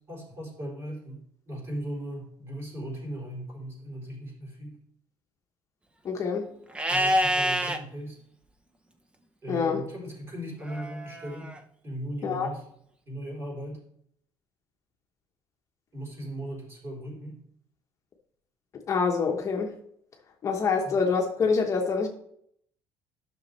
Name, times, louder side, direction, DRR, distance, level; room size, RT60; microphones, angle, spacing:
voice 1, 0.1-4.8 6.9-8.2 9.4-11.5 11.8-12.6 13.1-13.8 15.9-17.4 20.8-21.0, right 1 dB, 30° right, -2 dB, 3.7 m, -38 dB
voice 2, 6.0-6.5 9.5-9.8 12.2-12.5 18.9-19.7 20.4-22.1, left 5 dB, 40° left, 2 dB, 1.0 m, -26 dB
Livestock farm animals working animals, 6.7-7.8 10.6-11.6, equal, 15° right, 0.6 m, -26 dB
10.5 x 6.2 x 3.3 m, 0.69 s
cardioid pair, 130°, 9 cm